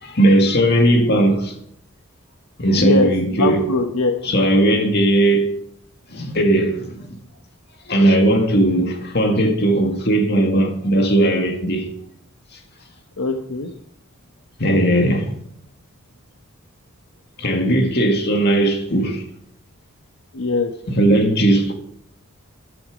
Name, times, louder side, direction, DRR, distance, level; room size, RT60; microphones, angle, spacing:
voice 1, 0.0-1.6 2.6-3.7 4.2-5.5 6.1-7.2 7.9-11.9 14.6-15.3 17.4-19.2 20.9-21.7, right 1 dB, 50° left, 2.2 m, -17 dB
voice 2, 2.8-4.2 13.2-13.7 20.3-20.7, left 3 dB, 90° left, 1.2 m, -21 dB
14.0 x 10.5 x 5.2 m
head